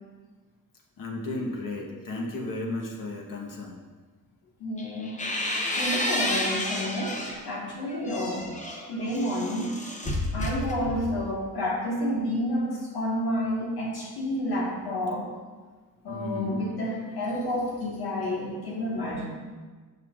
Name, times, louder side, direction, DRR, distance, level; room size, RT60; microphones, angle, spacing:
voice 1, 1.0-3.8 16.1-16.6, left 2 dB, 60° left, 0 dB, 1.1 m, -34 dB
voice 2, 4.6-5.2 5.8-8.5 8.9-9.8 10.3-15.3 16.0-19.3, left 1 dB, 85° left, -3 dB, 1.6 m, -30 dB
sound 1, 4.8-7.4 7.9-11.2, left 1 dB, 20° left, 0.7 m, -31 dB
6.9 x 5.6 x 2.4 m, 1.4 s
cardioid pair, 85°, 37 cm